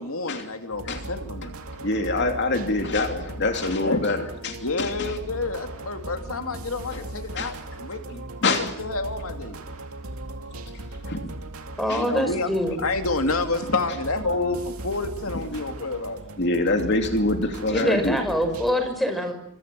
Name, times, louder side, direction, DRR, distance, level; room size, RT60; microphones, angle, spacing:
voice 1, 0.0-1.6 3.7-4.0 4.6-9.6 11.9-16.2, left 3 dB, 75° left, 6 dB, 2.5 m, -29 dB
sound 1, 0.7-18.7, right 1 dB, 80° right, 2.3 m, -38 dB
voice 2, 1.8-5.1 6.9-7.0 7.4-7.5 8.4-8.7 11.0-11.3 11.9-12.4 16.4-18.2, left 2 dB, 55° left, 5 dB, 2.8 m, -25 dB
voice 3, 11.8-12.8 17.7-19.3, equal, ahead, 6 dB, 6.0 m, -24 dB
29.5 x 26.5 x 7.6 m, 0.70 s
head